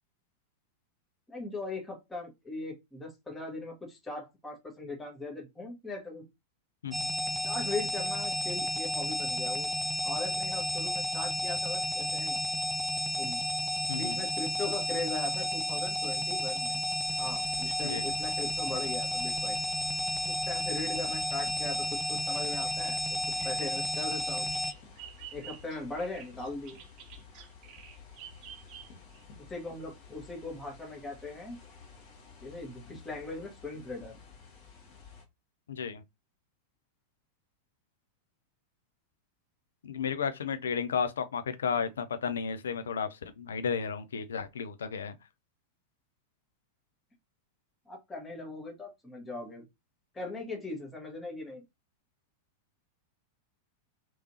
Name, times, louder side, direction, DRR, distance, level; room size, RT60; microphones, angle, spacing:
voice 1, 1.3-6.3 7.4-9.7 10.0-12.4 13.2-13.5 13.9-16.8 17.2-19.6 20.3-23.0 23.4-24.5 25.3-26.8 29.5-31.6 32.4-34.1 47.9-49.6 50.1-51.6, left 2 dB, 15° left, 1.4 m, -39 dB
sound 1, 6.9-24.7, left 1 dB, 10° right, 0.3 m, -32 dB
voice 2, 13.9-14.2 17.8-18.1 35.7-36.0 39.8-45.1, left 6 dB, 65° left, 0.5 m, -33 dB
sound 2, 17.0-35.2, left 5 dB, 40° left, 1.5 m, -52 dB
Bird vocalization bird call bird song, 22.6-29.2, right 10 dB, 40° right, 0.7 m, -50 dB
3.2 x 3.0 x 2.8 m
figure-of-eight pair, 90°, 0 cm